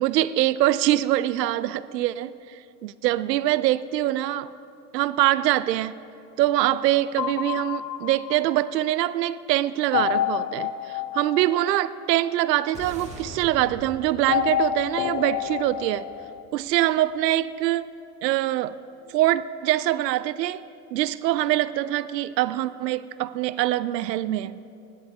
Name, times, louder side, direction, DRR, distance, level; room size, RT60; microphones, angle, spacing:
voice 1, 0.0-2.3 2.8-4.5 4.9-5.9 6.4-10.7 11.1-16.1 16.5-17.9 18.2-18.8 19.1-20.6 20.9-24.7, right 14 dB, 80° right, 17 dB, 0.7 m, -24 dB
sound 1, 7.2-8.9 9.9-12.5 14.3-16.4, left 11 dB, 90° left, 0.7 m, -28 dB
sound 2, 12.7-17.2, right 1 dB, 15° right, 2.4 m, -43 dB
20.0 x 11.0 x 3.6 m, 2.5 s
hypercardioid pair, 115°, 49 cm